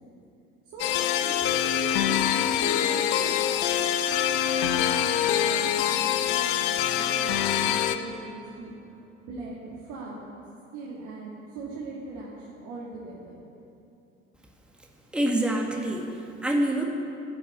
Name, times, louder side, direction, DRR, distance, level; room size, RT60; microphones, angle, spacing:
sound 1, 0.8-8.0, left 10 dB, 55° left, 0.9 m, -25 dB
voice 1, 1.2-3.4 4.1-10.3 10.7-13.3, right 3 dB, 55° right, -6 dB, 2.9 m, -40 dB
voice 2, 15.1-16.8, right 1 dB, 5° right, 1 dB, 1.8 m, -26 dB
13.5 x 8.5 x 9.9 m, 2.7 s
figure-of-eight pair, 65°, 37 cm